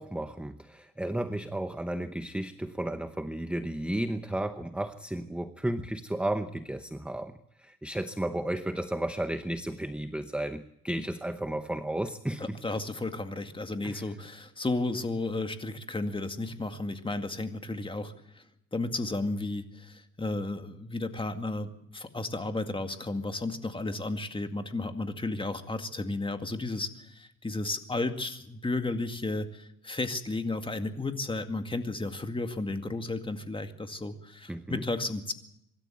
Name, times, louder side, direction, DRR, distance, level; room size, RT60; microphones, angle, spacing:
voice 1, 0.0-12.6 13.8-14.1 34.5-34.8, right 1 dB, 5° right, 10 dB, 0.8 m, -33 dB
voice 2, 12.4-18.4 18.7-35.3, left 2 dB, 20° left, 7 dB, 2.1 m, -33 dB
25.0 x 13.0 x 9.2 m, 0.80 s
cardioid pair, 100°, 29 cm